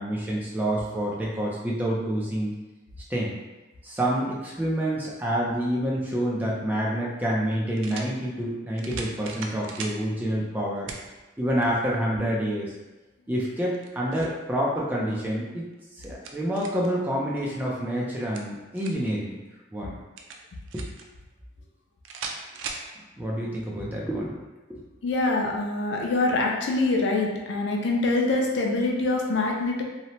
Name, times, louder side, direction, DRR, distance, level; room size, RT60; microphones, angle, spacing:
voice 1, 0.0-2.5 3.1-3.3 3.8-10.9 11.4-12.7 13.3-15.6 16.0-19.4 19.7-19.9 20.7-20.8 23.2-24.4 24.7-24.9, equal, 10° right, -4 dB, 0.4 m, -28 dB
sound 1, 6.6-6.7 7.8-8.1 8.8-10.0 10.9-11.1 11.6-11.7 13.6-14.4 15.7-16.9 18.1-19.1 20.2-21.1 22.0-22.9, right 4 dB, 90° right, 0.3 m, -38 dB
voice 2, 25.0-29.8, left 2 dB, 70° left, 0 dB, 0.4 m, -24 dB
2.7 x 2.1 x 2.9 m, 1.1 s
head